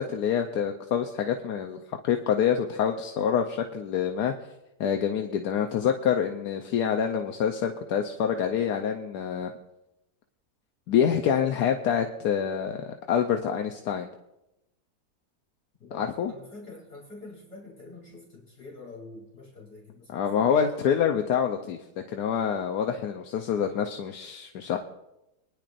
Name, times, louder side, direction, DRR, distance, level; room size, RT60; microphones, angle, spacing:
voice 1, 0.0-4.3 4.8-9.5 10.9-14.1 15.9-16.3 20.1-24.8, left 8 dB, 80° left, 4 dB, 1.3 m, -26 dB
voice 2, 15.8-20.5, left 2 dB, 50° left, -4 dB, 3.7 m, -46 dB
24.0 x 10.5 x 2.5 m, 0.92 s
omnidirectional pair, 1.7 m